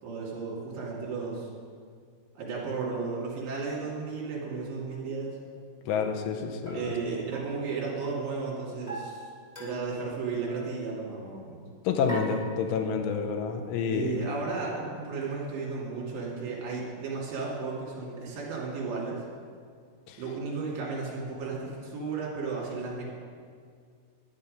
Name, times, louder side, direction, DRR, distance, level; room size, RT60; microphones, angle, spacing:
voice 1, 0.0-1.5 2.4-5.4 6.7-9.2 9.6-11.6 13.9-19.2 20.2-23.1, right 4 dB, 55° right, -5 dB, 3.6 m, -34 dB
voice 2, 5.9-6.9 11.8-14.2 20.1-20.2, left 6 dB, 75° left, 4 dB, 2.7 m, -29 dB
sound 1, 6.7-8.3 8.9-10.1 10.4-10.8 12.1-13.1, equal, 15° left, 1.3 m, -41 dB
11.5 x 9.7 x 5.2 m, 2.1 s
omnidirectional pair, 5.7 m